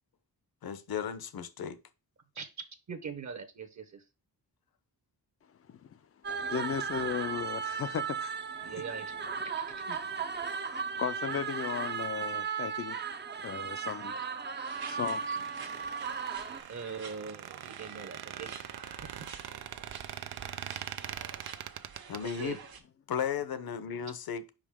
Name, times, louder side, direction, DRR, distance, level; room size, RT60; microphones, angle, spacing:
voice 1, 0.6-1.8 22.1-22.6 23.1-24.4, left 8 dB, 70° left, 0.9 m, -35 dB
voice 2, 2.9-4.0 8.6-9.1 9.4-10.1 15.3-15.4 16.7-18.6 19.0-19.3 22.2-22.6, right 6 dB, 45° right, 0.9 m, -42 dB
voice 3, 5.7-6.0 6.5-8.8 9.9-10.2 10.5-13.0 13.4-14.4 14.8-15.5, left 7 dB, 40° left, 0.4 m, -37 dB
sound 1, 6.2-16.6, right 6 dB, 30° right, 0.5 m, -36 dB
sound 2, 14.6-22.8, right 6 dB, 70° right, 1.4 m, -48 dB
Squeak, 15.0-22.2, right 11 dB, 90° right, 0.6 m, -43 dB
5.5 x 5.0 x 3.5 m
wide cardioid pair, 160°, 38 cm